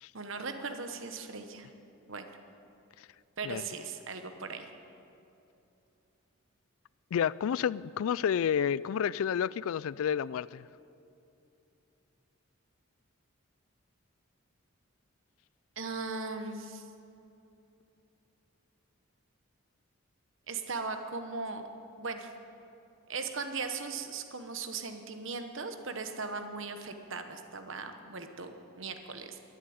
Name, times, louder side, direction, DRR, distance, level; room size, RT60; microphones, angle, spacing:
voice 1, 0.1-1.7 2.1-2.3 3.4-4.7 15.8-16.9 20.5-21.6 22.0-22.3 23.1-29.5, right 4 dB, 65° right, 1.1 m, -38 dB
voice 2, 7.1-10.7, left 8 dB, 75° left, 0.3 m, -30 dB
12.0 x 11.0 x 9.4 m
head